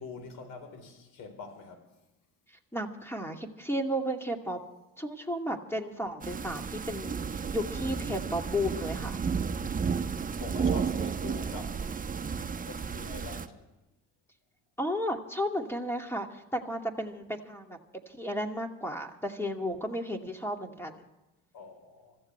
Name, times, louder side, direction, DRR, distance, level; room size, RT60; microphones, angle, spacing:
voice 1, 0.0-2.0 10.4-11.8 12.7-13.7 21.5-22.2, left 4 dB, 75° left, 4.2 m, -45 dB
voice 2, 2.7-4.6 5.0-9.2 14.8-17.8 18.1-21.1, equal, 5° left, 2.4 m, -33 dB
sound 1, 6.2-13.5, right 6 dB, 25° right, 1.1 m, -32 dB
25.5 x 15.0 x 3.4 m
supercardioid pair, 85°, 32 cm